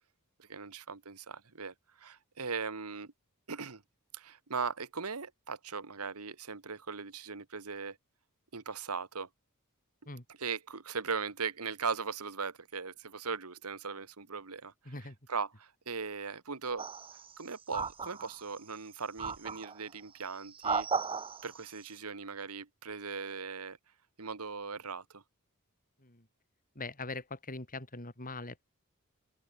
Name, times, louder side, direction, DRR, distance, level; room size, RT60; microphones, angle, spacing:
voice 1, 0.5-3.1 3.5-3.8 4.1-8.0 8.5-9.3 10.4-14.7 15.3-16.8 17.4-20.9 21.4-23.8 24.2-25.2, right 5 dB, 80° right, 1.6 m, -39 dB
voice 2, 14.8-15.2 26.0-26.3 26.7-28.6, left 3 dB, 40° left, 6.6 m, -42 dB
sound 1, 16.8-17.3 17.7-18.6 19.2-19.8 20.4-21.6, right 5 dB, 25° right, 0.8 m, -35 dB
head